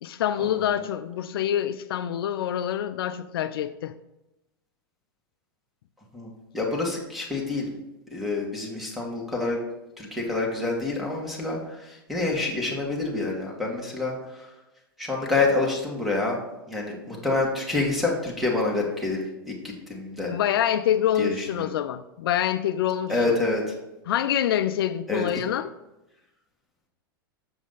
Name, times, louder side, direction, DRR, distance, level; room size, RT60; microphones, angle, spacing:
voice 1, 0.0-3.9 20.3-23.4 24.1-25.7, left 10 dB, 75° left, 11 dB, 0.4 m, -26 dB
voice 2, 6.1-7.7 8.1-9.6 10.0-14.5 15.0-16.4 16.7-19.5 19.9-20.3 21.2-21.7 23.1-23.6 25.1-25.2, left 3 dB, ahead, -1 dB, 1.8 m, -27 dB
6.8 x 5.0 x 4.0 m, 0.96 s
hypercardioid pair, 110°, 12 cm